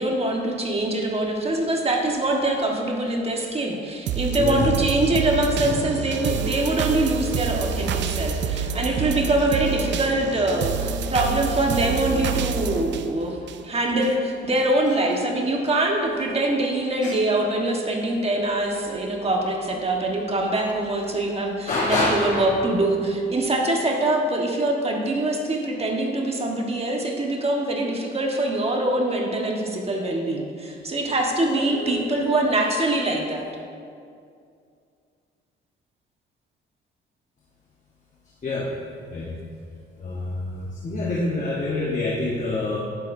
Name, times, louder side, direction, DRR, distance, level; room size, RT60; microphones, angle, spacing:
voice 1, 0.0-13.4 13.6-33.5, right 2 dB, 30° right, 0 dB, 1.4 m, -24 dB
sound 1, 4.1-14.1 14.6-14.7, right 6 dB, 65° right, 0.5 m, -28 dB
voice 2, 4.4-4.7 5.6-6.0 17.0-17.1 21.7-22.5 31.4-32.2 38.4-38.7 39.1-39.4 40.0-42.8, left 2 dB, 40° left, -4 dB, 1.3 m, -27 dB
10.5 x 10.0 x 2.7 m, 2.4 s
cardioid pair, 90°, 20 cm